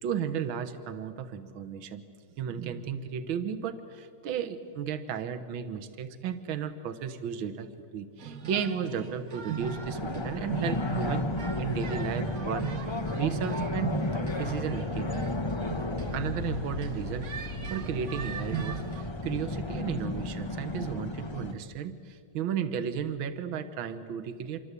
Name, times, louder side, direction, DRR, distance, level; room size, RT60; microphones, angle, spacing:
voice 1, 0.0-2.0 2.4-11.2 11.6-15.1 16.1-24.6, right 7 dB, 65° right, 10 dB, 1.9 m, -34 dB
sound 1, 8.2-19.0, right 5 dB, 45° right, 1.4 m, -38 dB
sound 2, 9.6-21.5, left 2 dB, 50° left, 0.3 m, -33 dB
26.5 x 23.5 x 8.3 m, 2.2 s
omnidirectional pair, 2.4 m